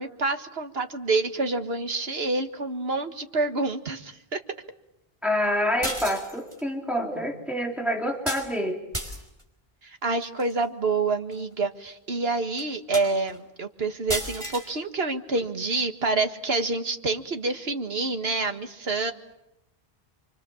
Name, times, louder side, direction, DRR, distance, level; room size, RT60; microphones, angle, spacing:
voice 1, 0.0-4.4 9.8-19.1, right 3 dB, 75° right, 7 dB, 1.9 m, -27 dB
voice 2, 5.2-8.8, equal, ahead, 1 dB, 3.3 m, -27 dB
sound 1, 5.8-6.6 8.3-8.5 8.9-9.4 10.2-10.5 11.3-11.4 11.9-12.0 12.6-12.7 12.9-13.4 14.1-14.7, right 1 dB, 30° right, 4.6 m, -32 dB
28.5 x 24.5 x 7.2 m, 0.87 s
omnidirectional pair, 1.0 m